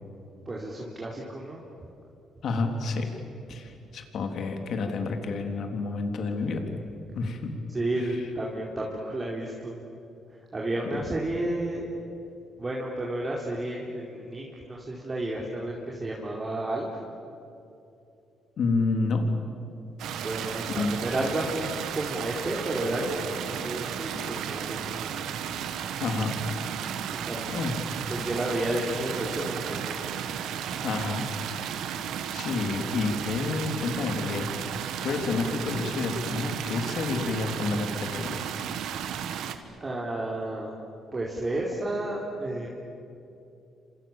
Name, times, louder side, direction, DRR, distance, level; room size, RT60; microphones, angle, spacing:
voice 1, 0.5-1.6 7.7-9.8 10.5-11.8 12.6-16.9 19.9-25.1 26.9-27.6 28.0-30.0 39.8-40.7 41.1-42.7, right 1 dB, 25° right, -3 dB, 4.3 m, -32 dB
voice 2, 2.4-3.1 3.5-6.7 7.1-7.5 18.6-19.2 20.7-21.0 26.0-26.3 27.5-27.7 30.8-31.3 31.8-34.5 35.0-38.4, left 4 dB, 65° left, 4 dB, 3.6 m, -29 dB
sound 1, 20.0-39.6, right 9 dB, 85° right, 1.8 m, -34 dB
29.0 x 26.5 x 7.5 m, 2.7 s
cardioid pair, 90°, 0 cm